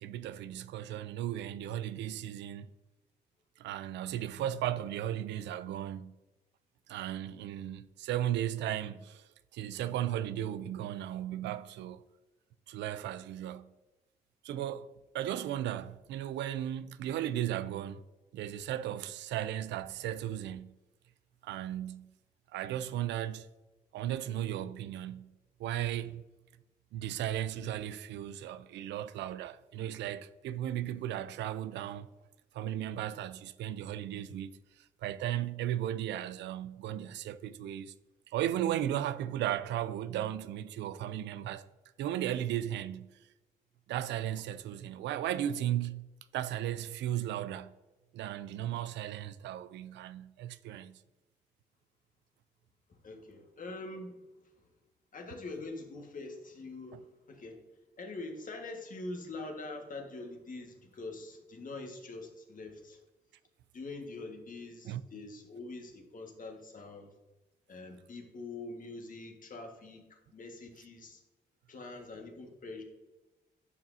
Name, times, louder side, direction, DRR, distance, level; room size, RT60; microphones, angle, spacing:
voice 1, 0.0-2.7 3.6-6.2 6.9-9.2 9.5-12.0 12.7-13.7 14.4-18.0 18.3-20.7 21.4-22.1 22.5-23.5 23.9-25.3 25.6-26.2 26.9-32.1 32.5-34.5 35.0-37.9 38.3-41.7 42.0-43.1 43.9-46.1 46.3-47.7 48.1-51.0 64.8-65.0, right 11 dB, 85° right, 0.4 m, -35 dB
voice 2, 52.9-54.7 55.1-57.6 58.0-63.0 63.7-67.1 67.7-71.2 71.7-72.8, left 2 dB, 50° left, 1.6 m, -44 dB
10.5 x 6.0 x 2.7 m
cardioid pair, 65°, 18 cm